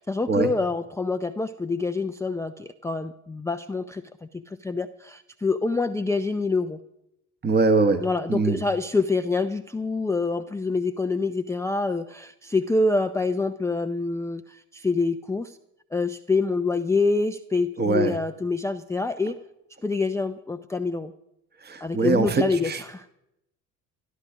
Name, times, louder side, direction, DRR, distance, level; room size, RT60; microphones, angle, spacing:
voice 1, 0.0-6.8 8.0-15.6 15.9-19.4 19.8-21.1 21.8-23.1, left 3 dB, 5° left, 7 dB, 0.5 m, -26 dB
voice 2, 7.4-8.0 8.3-8.6 17.8-18.1 21.6-22.8, right 3 dB, 20° right, 8 dB, 1.3 m, -22 dB
13.5 x 12.5 x 6.1 m, 0.83 s
hypercardioid pair, 60°, 46 cm